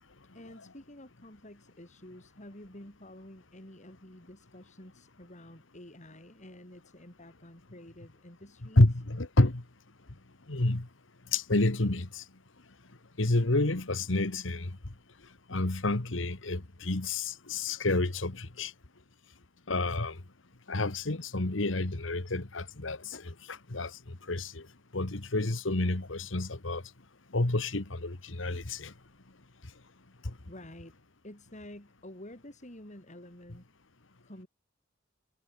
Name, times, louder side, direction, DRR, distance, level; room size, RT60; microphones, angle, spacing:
voice 1, 0.3-8.9 30.5-31.0 31.2-33.6 34.2-34.5, left 1 dB, 40° left, 7.2 m, -49 dB
voice 2, 8.8-9.6 10.5-10.9 11.3-12.2 13.2-14.7 15.5-18.7 19.7-20.2 20.7-23.9 24.3-24.6 24.9-26.8 27.3-28.9, left 2 dB, 75° left, 1.7 m, -29 dB
head